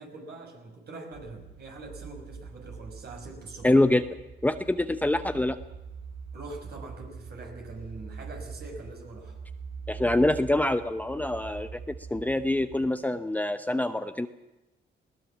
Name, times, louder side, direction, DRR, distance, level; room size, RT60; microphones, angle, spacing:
voice 1, 0.0-3.7 6.3-9.4, right 2 dB, 55° right, 3 dB, 6.0 m, -43 dB
sound 1, 1.1-12.9, right 5 dB, 75° right, 5.7 m, -44 dB
voice 2, 3.6-4.0 4.4-5.6 9.9-14.3, left 1 dB, 10° left, 9 dB, 0.8 m, -25 dB
20.5 x 18.0 x 7.3 m, 1.0 s
cardioid pair, 90°, 20 cm